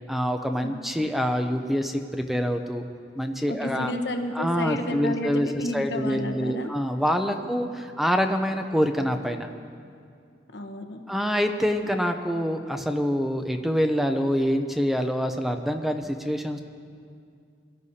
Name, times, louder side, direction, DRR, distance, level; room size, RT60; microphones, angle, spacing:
voice 1, 0.1-2.8 3.2-3.9 4.3-9.5 11.1-16.6, equal, ahead, 5 dB, 0.5 m, -26 dB
voice 2, 3.5-6.7 7.3-7.6 10.5-11.0, left 1 dB, 75° left, 5 dB, 1.0 m, -31 dB
22.0 x 12.5 x 2.8 m, 2.3 s
head